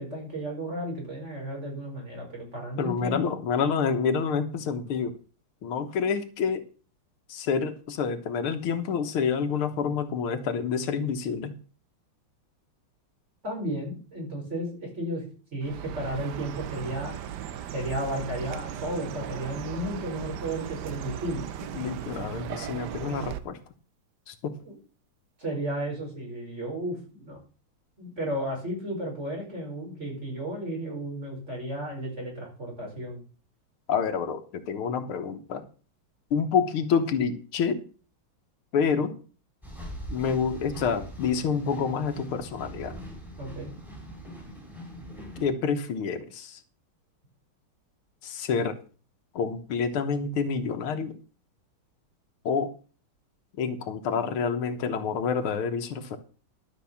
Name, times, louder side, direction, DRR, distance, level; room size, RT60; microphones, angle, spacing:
voice 1, 0.0-3.2 13.4-15.2 15.5-17.2 17.7-21.5 24.7-24.8 25.4-27.4 28.0-33.2 43.4-43.7, right 1 dB, 30° right, -1 dB, 5.5 m, -33 dB
voice 2, 2.8-5.2 5.6-6.7 7.3-11.5 21.7-23.6 24.3-24.6 33.9-35.7 36.3-37.9 38.7-39.2 40.1-43.0 45.4-46.6 48.2-48.8 49.3-51.2 52.5-52.7 53.6-56.2, left 6 dB, 85° left, 8 dB, 2.0 m, -28 dB
Chirp tweet, 15.6-23.4, right 10 dB, 65° right, 1.2 m, -37 dB
sound 1, 39.6-45.5, right 1 dB, ahead, 4.0 m, -41 dB
12.0 x 5.7 x 7.1 m, 0.38 s
omnidirectional pair, 2.3 m